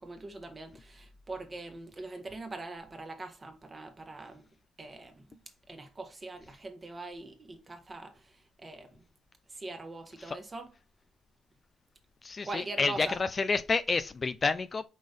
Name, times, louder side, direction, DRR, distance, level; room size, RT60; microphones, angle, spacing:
voice 1, 0.0-4.4 4.8-5.4 5.7-9.0 9.5-10.7 12.4-13.2, right 2 dB, 30° right, 1.5 m, -42 dB
voice 2, 12.2-14.9, left 4 dB, 35° left, 0.5 m, -29 dB
5.3 x 3.9 x 5.1 m
cardioid pair, 90°, 0 cm